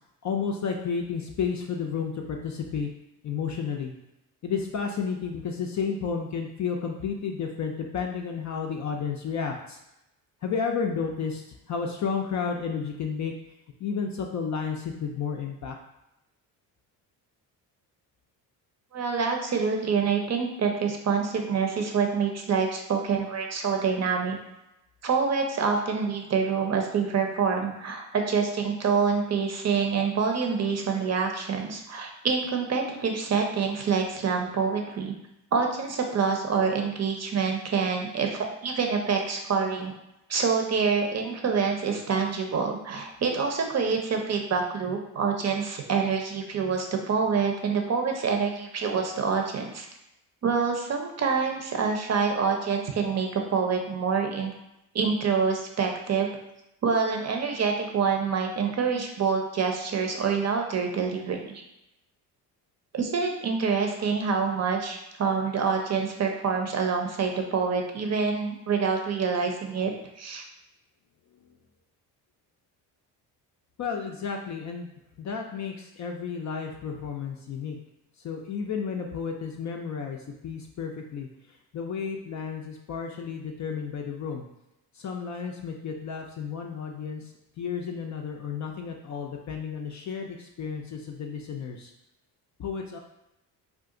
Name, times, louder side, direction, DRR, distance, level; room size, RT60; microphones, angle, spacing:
voice 1, 0.2-2.9 3.2-3.9 4.4-9.8 10.4-13.3 13.8-15.7 73.8-74.9 75.2-77.8 78.2-80.2 80.4-81.3 81.7-84.4 85.0-87.3 87.6-91.9 92.6-93.0, left 6 dB, 40° left, 2 dB, 0.4 m, -32 dB
voice 2, 18.9-24.4 25.0-35.1 35.5-39.9 40.3-49.9 50.4-54.5 54.9-56.3 56.8-61.6 62.9-70.4, right 5 dB, 35° right, 3 dB, 0.7 m, -26 dB
2.5 x 2.4 x 3.7 m, 0.87 s
supercardioid pair, 70°, 44 cm